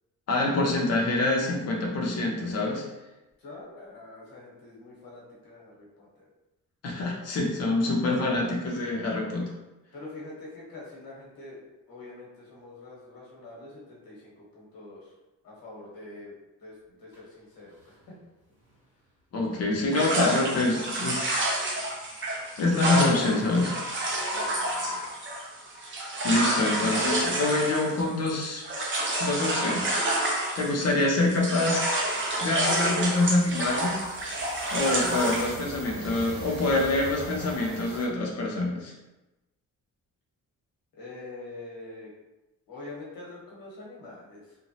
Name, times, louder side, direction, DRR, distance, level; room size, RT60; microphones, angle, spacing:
voice 1, 0.3-2.8 6.8-9.5 19.3-21.3 22.6-23.7 26.2-28.6 29.2-30.0 30.5-32.0 32.4-34.0 34.7-38.9, left 2 dB, 50° left, -1 dB, 0.6 m, -26 dB
voice 2, 3.4-6.3 9.9-15.1 15.4-16.3 16.6-18.1 24.3-25.1 40.9-42.1 42.7-44.6, left 2 dB, 90° left, -4 dB, 1.1 m, -45 dB
sound 1, 17.1-17.2 17.8-18.0 18.6-18.8 21.4-25.9, left 1 dB, 10° right, 1.2 m, -41 dB
sound 2, 19.9-31.0 31.3-35.6, right 1 dB, 35° right, 0.5 m, -29 dB
sound 3, 29.7-29.8 30.0-30.2 30.5-38.1, right 2 dB, 75° right, 0.8 m, -43 dB
3.0 x 2.1 x 2.7 m, 1.0 s
cardioid pair, 155°, 34 cm